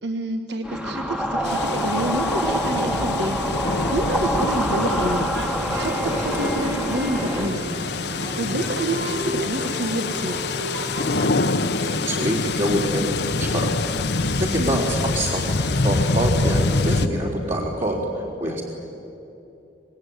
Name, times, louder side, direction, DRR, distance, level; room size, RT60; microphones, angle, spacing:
voice 1, 0.0-3.4 3.9-5.3 5.7-7.6 8.4-10.4 14.6-14.9, right 1 dB, 65° right, 7 dB, 1.5 m, -28 dB
sound 1, 0.6-7.5, equal, 5° right, 1.5 m, -26 dB
sound 2, 1.4-17.1, left 3 dB, 65° left, 1.0 m, -26 dB
sound 3, 5.3-11.3, equal, 85° right, 4.6 m, -32 dB
voice 2, 11.8-13.7 14.2-18.6, right 1 dB, 45° right, -4 dB, 3.9 m, -26 dB
26.5 x 20.5 x 9.6 m, 2.8 s
head